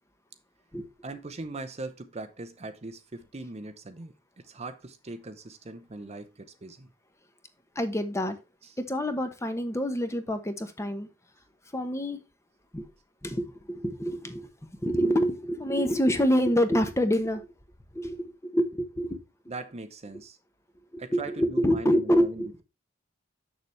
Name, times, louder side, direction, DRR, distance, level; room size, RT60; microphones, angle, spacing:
voice 1, 1.0-6.9 8.6-8.8 19.5-20.4 21.0-22.6, right 2 dB, 30° right, 0.7 m, -40 dB
voice 2, 7.7-8.4 8.8-11.1 11.7-12.2 12.7-12.9 13.2-17.5 17.9-19.2 20.9-22.6, equal, 15° left, 1.0 m, -27 dB
6.8 x 6.7 x 3.2 m
head